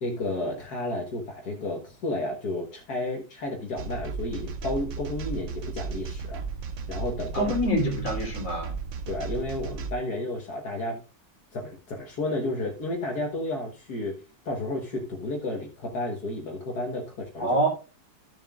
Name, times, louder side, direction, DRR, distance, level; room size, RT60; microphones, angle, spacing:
voice 1, 0.0-6.4 6.9-7.5 9.1-11.0 11.5-17.5, left 2 dB, 65° left, 1.9 m, -32 dB
sound 1, 3.8-9.9, right 5 dB, 55° right, 1.0 m, -35 dB
voice 2, 7.3-8.7 17.4-17.7, right 1 dB, 30° left, 3.3 m, -25 dB
14.5 x 7.1 x 2.4 m
omnidirectional pair, 1.8 m